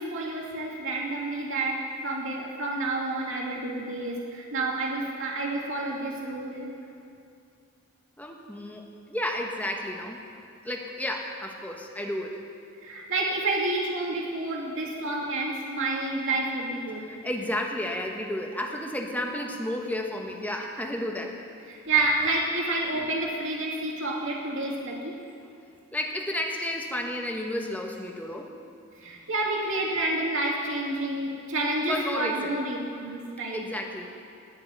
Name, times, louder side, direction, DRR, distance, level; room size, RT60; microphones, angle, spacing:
voice 1, 0.0-6.7 12.8-17.2 21.7-25.1 29.0-33.6, right 2 dB, 60° right, -2 dB, 2.6 m, -29 dB
voice 2, 8.2-10.2 10.6-12.4 17.1-21.4 25.9-28.5 31.9-32.5 33.5-34.1, left 1 dB, 5° left, 1 dB, 1.3 m, -32 dB
19.5 x 6.7 x 9.2 m, 2.5 s
head